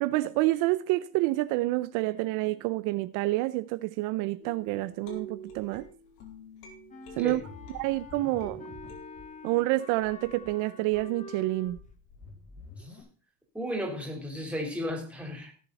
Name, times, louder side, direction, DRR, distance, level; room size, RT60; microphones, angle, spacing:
voice 1, 0.0-5.9 7.2-7.4 7.7-8.6 9.4-11.8, right 18 dB, 70° right, 0.7 m, -28 dB
sound 1, 4.4-8.0 8.4-9.6, right 2 dB, 80° left, 4.3 m, -47 dB
Wind instrument woodwind instrument, 6.9-11.8, left 5 dB, 25° left, 1.7 m, -47 dB
sound 2, 7.4-9.3 9.6-9.7 10.0-10.5 10.9-13.0, left 3 dB, 55° left, 6.0 m, -49 dB
voice 2, 13.5-15.5, equal, 5° right, 3.9 m, -34 dB
17.5 x 7.4 x 4.1 m
cardioid pair, 130°, 32 cm